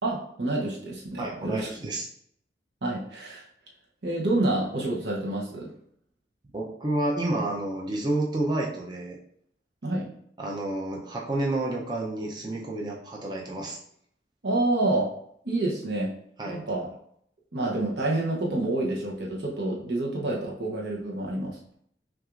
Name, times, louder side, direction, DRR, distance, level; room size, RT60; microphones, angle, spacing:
voice 1, 0.0-1.7 2.8-3.4 4.0-5.7 9.8-10.1 14.4-15.1 15.4-16.1 16.5-16.9 17.5-21.6, right 2 dB, 70° right, -3 dB, 0.8 m, -28 dB
voice 2, 1.2-2.1 6.5-9.2 10.4-13.8 16.4-16.6, right 2 dB, 25° right, -2 dB, 0.5 m, -30 dB
5.8 x 2.4 x 2.5 m, 0.67 s
head